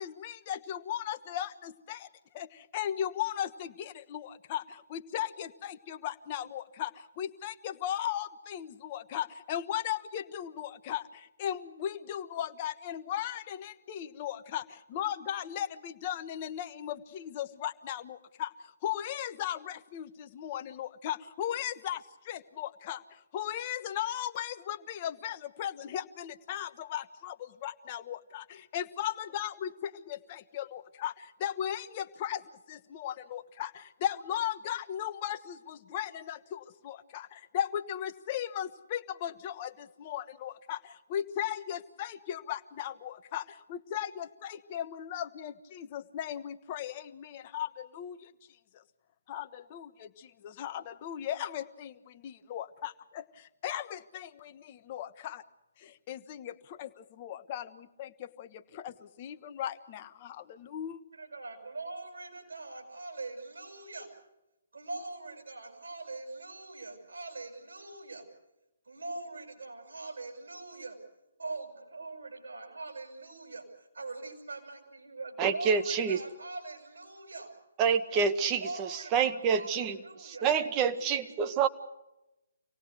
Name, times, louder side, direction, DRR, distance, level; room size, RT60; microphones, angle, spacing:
voice 1, 0.0-2.1 2.3-48.3 48.7-48.8 49.3-55.4 55.8-61.0, left 10 dB, 30° left, 9 dB, 1.0 m, -37 dB
voice 2, 61.1-64.1 64.7-68.3 68.8-71.0 71.4-77.5 78.5-81.6, right 3 dB, 70° right, 2 dB, 6.7 m, -43 dB
voice 3, 75.4-76.2 77.8-80.0 80.2-81.7, right 6 dB, 20° right, 8 dB, 1.1 m, -27 dB
25.5 x 18.5 x 8.2 m, 0.94 s
figure-of-eight pair, 135°, 0 cm